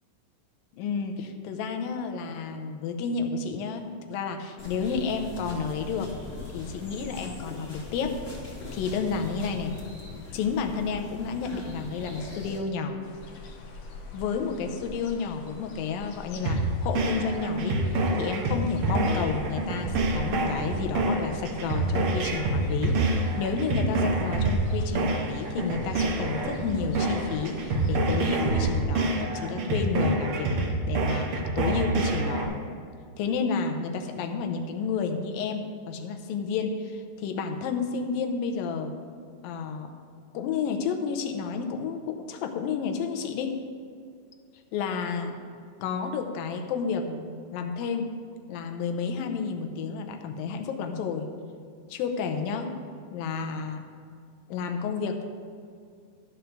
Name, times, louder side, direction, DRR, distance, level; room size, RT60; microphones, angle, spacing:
voice 1, 0.7-6.1 6.5-8.2 8.7-9.7 10.3-13.0 14.1-30.5 30.9-32.6 33.2-39.0 39.4-39.9 40.3-43.6 44.7-45.4 45.8-48.1 48.5-51.3 51.9-52.8 53.1-53.8 54.5-55.3, left 5 dB, 90° left, 5 dB, 2.5 m, -31 dB
sound 1, 4.6-12.6, left 3 dB, 20° left, 1.9 m, -41 dB
sound 2, 13.0-28.8, left 3 dB, 70° left, 1.4 m, -43 dB
sound 3, 16.5-32.5, right 2 dB, 85° right, 1.2 m, -27 dB
13.0 x 4.6 x 6.5 m, 2.2 s
omnidirectional pair, 4.0 m